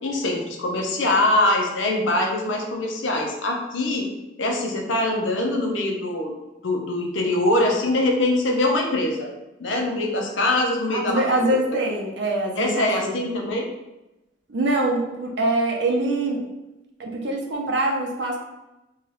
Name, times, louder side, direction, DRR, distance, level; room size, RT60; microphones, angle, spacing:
voice 1, 0.0-4.1 4.4-6.3 6.6-9.3 9.6-11.2 12.6-13.7, left 2 dB, 90° left, 1 dB, 0.6 m, -23 dB
voice 2, 10.9-13.2 14.5-16.4 17.0-18.4, right 2 dB, 70° right, 0 dB, 0.6 m, -24 dB
2.8 x 2.3 x 3.2 m, 0.97 s
head